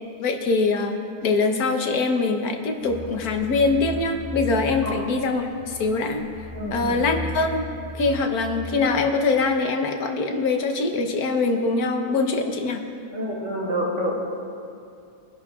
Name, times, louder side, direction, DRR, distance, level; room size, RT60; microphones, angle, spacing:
voice 1, 0.2-6.2 6.7-7.6 7.9-12.8, left 3 dB, 65° left, 4 dB, 1.4 m, -23 dB
sound 1, 2.8-9.4, left 2 dB, 20° right, 2.8 m, -37 dB
voice 2, 6.5-7.1 13.1-14.1, equal, 45° right, -5 dB, 2.5 m, -28 dB
23.5 x 11.0 x 2.4 m, 2.4 s
omnidirectional pair, 1.8 m